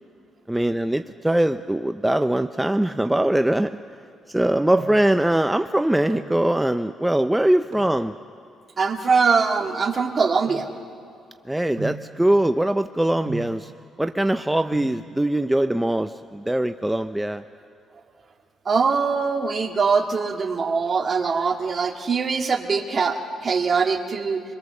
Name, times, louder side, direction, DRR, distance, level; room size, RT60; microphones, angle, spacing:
voice 1, 0.5-3.7 4.3-8.2 11.5-13.7 14.0-17.4, right 1 dB, 5° right, 9 dB, 0.5 m, -22 dB
sound 1, 4.8-5.2 5.9-6.4 7.7-8.0 8.8-11.2 11.8-12.2 13.3-13.7 14.4-14.5 14.7-15.1 16.2-16.7 17.0-17.1 17.3-17.5 17.9-18.3 18.6-19.6 20.0-20.5 20.8-22.0 22.3-22.4, right 5 dB, 70° right, 3.2 m, -38 dB
voice 2, 8.8-10.7 18.7-24.4, right 5 dB, 40° right, 4 dB, 1.9 m, -22 dB
25.5 x 21.5 x 7.1 m, 2.5 s
cardioid pair, 90°, 0 cm